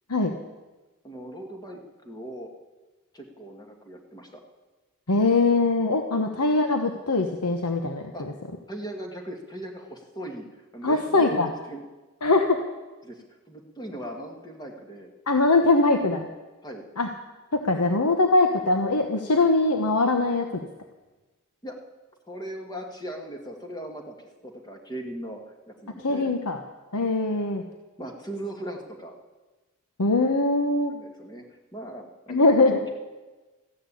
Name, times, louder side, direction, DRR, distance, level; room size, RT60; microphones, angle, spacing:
voice 1, 1.0-2.5 3.1-4.4 6.2-6.5 8.1-8.2 8.7-10.5 10.7-11.8 13.0-15.1 16.6-16.8 21.6-21.8 22.3-25.4 25.7-26.3 28.0-29.1 30.9-31.4 31.7-32.9, right 1 dB, 20° left, 3 dB, 2.0 m, -39 dB
voice 2, 5.1-8.1 10.8-11.5 12.2-12.6 15.3-16.3 17.0-17.1 17.5-20.7 26.0-26.6 26.9-27.6 30.0-30.9 32.3-32.8, left 3 dB, 90° left, 5 dB, 1.1 m, -22 dB
15.0 x 10.5 x 8.5 m, 1.2 s
head